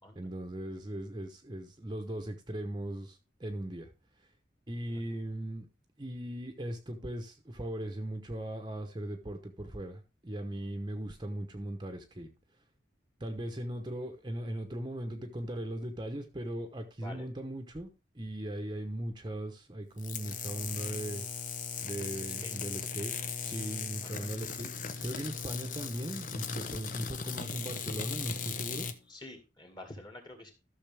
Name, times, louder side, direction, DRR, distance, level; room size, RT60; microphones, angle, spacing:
voice 1, 0.1-3.9 4.2-4.3 4.7-5.7 6.0-12.3 13.2-21.2 21.8-23.1 23.4-28.9, right 1 dB, 25° right, 1.0 m, -39 dB
sound 1, 20.0-29.0, left 6 dB, 45° left, 0.8 m, -38 dB
voice 2, 22.2-22.6 24.0-24.3 29.1-30.5, left 1 dB, 25° left, 2.2 m, -48 dB
13.5 x 6.4 x 3.5 m
head